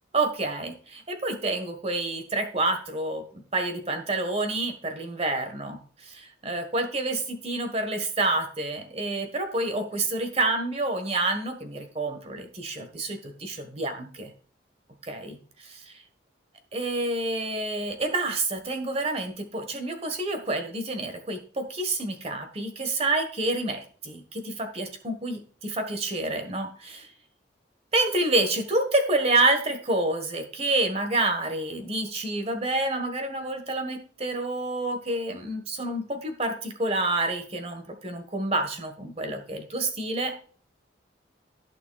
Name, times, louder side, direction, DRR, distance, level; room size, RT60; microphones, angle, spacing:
voice 1, 0.1-14.3 15.0-16.0 16.7-27.1 27.9-40.6, right 2 dB, 35° right, 7 dB, 1.5 m, -28 dB
14.5 x 6.2 x 2.4 m, 0.43 s
head